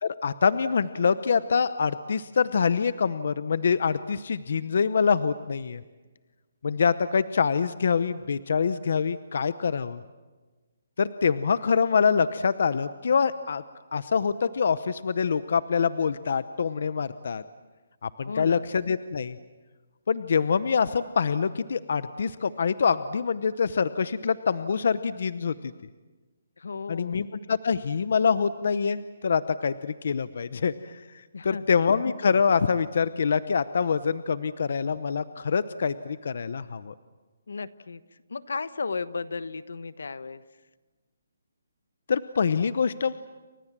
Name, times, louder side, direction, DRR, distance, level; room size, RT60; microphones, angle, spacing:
voice 1, 0.0-5.8 6.6-10.0 11.0-13.6 13.9-17.4 18.0-19.4 20.1-25.7 26.9-31.0 31.4-36.9 42.1-43.1, left 6 dB, 50° left, 15 dB, 0.8 m, -25 dB
voice 2, 18.3-18.6 26.6-27.3 31.3-31.8 37.5-38.0 38.3-40.4, left 4 dB, 75° left, 15 dB, 1.3 m, -34 dB
30.0 x 25.5 x 7.5 m, 1.3 s
hypercardioid pair, 175°, 0 cm